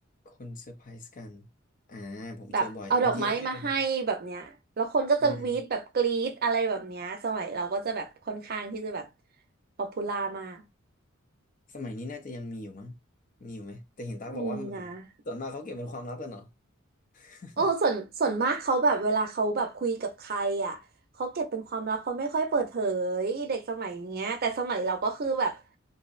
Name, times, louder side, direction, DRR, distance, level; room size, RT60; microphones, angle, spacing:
voice 1, 0.2-1.5 1.9-3.7 5.2-5.6 11.7-12.9 13.4-14.9 15.3-16.5 17.1-17.7, left 2 dB, 40° left, 0.5 m, -39 dB
voice 2, 2.5-9.1 9.8-10.6 14.3-15.0 17.6-20.8 21.2-25.6, right 4 dB, 50° right, 0.5 m, -28 dB
2.6 x 2.0 x 2.3 m
head